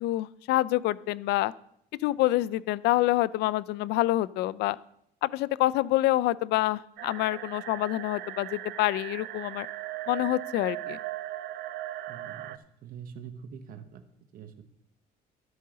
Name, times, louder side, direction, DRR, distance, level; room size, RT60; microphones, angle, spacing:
voice 1, 0.0-1.5 2.0-4.8 5.2-9.7 10.1-11.0, left 16 dB, 80° left, 20 dB, 0.4 m, -27 dB
sound 1, 7.0-12.6, right 15 dB, 80° right, 0.5 m, -38 dB
voice 2, 12.1-14.0 14.3-14.6, right 7 dB, 60° right, 7 dB, 0.9 m, -45 dB
12.0 x 9.4 x 3.8 m, 0.75 s
cardioid pair, 110°, 17 cm